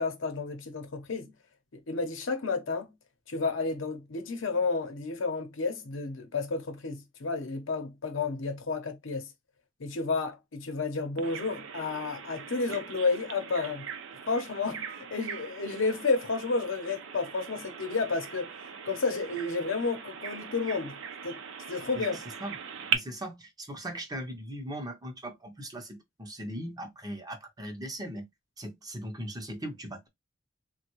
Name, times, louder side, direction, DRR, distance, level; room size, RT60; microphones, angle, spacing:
voice 1, 0.0-1.3 1.7-2.9 3.3-9.3 9.8-13.9 14.3-18.5 18.8-21.0 21.2-21.4 21.7-22.2, left 4 dB, 75° left, 0.8 m, -31 dB
Bird vocalization bird call bird song, 11.2-23.0, right 7 dB, 80° right, 0.5 m, -40 dB
voice 2, 22.9-28.3 28.6-30.1, right 1 dB, 20° right, 0.7 m, -39 dB
3.4 x 2.2 x 2.9 m
head